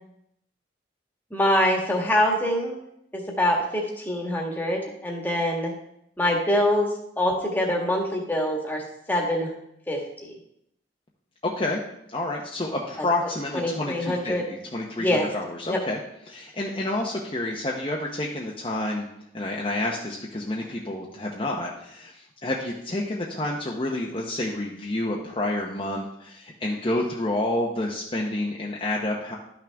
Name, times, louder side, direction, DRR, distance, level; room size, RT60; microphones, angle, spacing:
voice 1, 1.3-2.7 3.1-5.7 6.2-6.9 7.2-8.8 9.1-9.6 9.9-10.3 13.5-14.4 15.0-15.3 15.7-15.8, left 1 dB, 10° left, -1 dB, 1.5 m, -24 dB
voice 2, 11.4-11.8 12.1-16.0 16.3-19.1 19.3-29.4, left 1 dB, 30° left, -2 dB, 0.9 m, -29 dB
12.0 x 6.1 x 3.5 m, 0.78 s
head